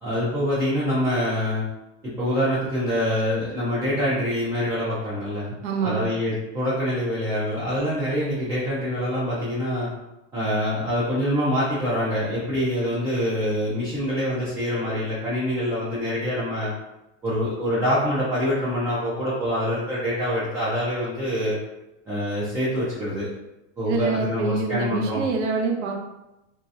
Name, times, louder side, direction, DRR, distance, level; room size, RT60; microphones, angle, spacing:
voice 1, 0.0-1.7 2.0-5.5 5.8-9.9 10.3-16.7 17.2-21.6 22.1-23.3 23.8-25.3, equal, 10° right, -9 dB, 0.3 m, -25 dB
voice 2, 5.6-6.1 23.9-26.0, right 4 dB, 70° right, 1 dB, 0.7 m, -26 dB
3.1 x 2.7 x 2.3 m, 0.96 s
supercardioid pair, 140°, 37 cm